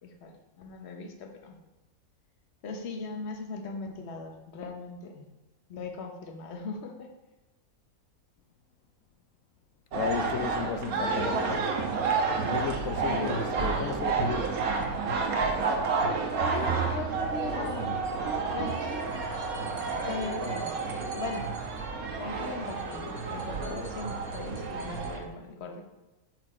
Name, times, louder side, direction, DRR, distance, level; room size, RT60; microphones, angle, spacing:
voice 1, 0.0-1.6 2.6-5.3 5.7-7.1 13.0-13.9 16.4-18.1 18.5-19.3 20.1-21.5 22.2-25.8, left 3 dB, 50° left, 1.2 m, -39 dB
voice 2, 9.9-11.7 12.5-14.6, left 7 dB, 70° left, 0.9 m, -34 dB
sound 1, 9.9-25.2, right 4 dB, 80° right, 1.5 m, -30 dB
12.5 x 4.4 x 4.3 m
omnidirectional pair, 1.5 m